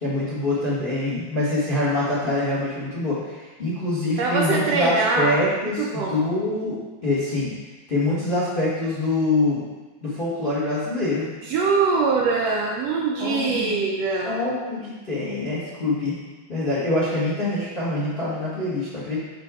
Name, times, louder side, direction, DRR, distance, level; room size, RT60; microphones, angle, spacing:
voice 1, 0.0-7.5 7.9-9.6 10.0-11.3 13.2-13.8 14.2-16.2 16.5-19.2, left 2 dB, 30° left, -8 dB, 1.0 m, -25 dB
voice 2, 4.2-5.4 5.6-6.2 11.4-14.4, right 4 dB, 75° right, -2 dB, 1.6 m, -23 dB
7.8 x 5.1 x 3.7 m, 1.3 s
omnidirectional pair, 3.5 m